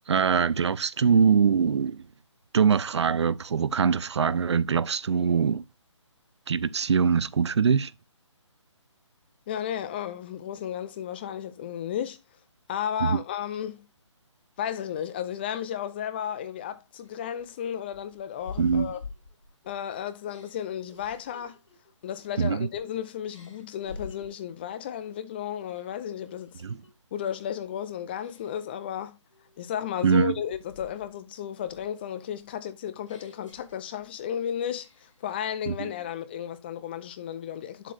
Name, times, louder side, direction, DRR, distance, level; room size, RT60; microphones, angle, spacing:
voice 1, 0.1-2.0 2.5-5.6 6.5-7.9 13.0-13.2 18.6-18.9 22.4-22.7 26.6-26.8 30.0-30.3 35.7-35.9, right 6 dB, 60° right, 0.6 m, -23 dB
voice 2, 9.5-12.2 12.7-13.9 14.6-19.0 19.6-21.6 22.0-26.6 27.1-29.2 29.6-37.9, left 9 dB, 20° left, 0.5 m, -33 dB
sound 1, 17.0-19.8 20.2-22.9 23.3-24.5 25.0-25.3 25.6-26.9 27.3-27.7 28.2-28.8 29.3-31.2 31.6-34.3 34.6-35.3, left 4 dB, 70° left, 3.7 m, -47 dB
8.3 x 7.6 x 2.5 m
hypercardioid pair, 155°, 16 cm